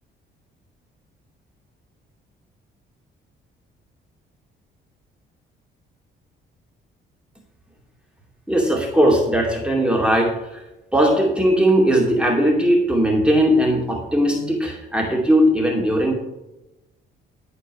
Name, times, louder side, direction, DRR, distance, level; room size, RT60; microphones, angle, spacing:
voice 1, 8.5-10.6 10.9-16.1, equal, 5° right, -1 dB, 2.4 m, -18 dB
13.0 x 4.5 x 7.1 m, 0.95 s
cardioid pair, 90°, 20 cm